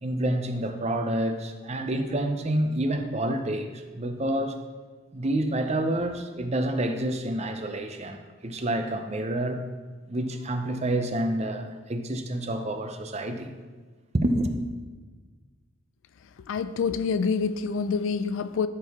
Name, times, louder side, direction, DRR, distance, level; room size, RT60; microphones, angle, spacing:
voice 1, 0.0-4.6 5.1-9.6 10.1-13.5 14.1-14.6, right 1 dB, 30° right, 7 dB, 0.6 m, -28 dB
voice 2, 16.5-18.7, left 5 dB, 70° left, 12 dB, 0.3 m, -27 dB
12.5 x 4.6 x 3.6 m, 1.4 s
head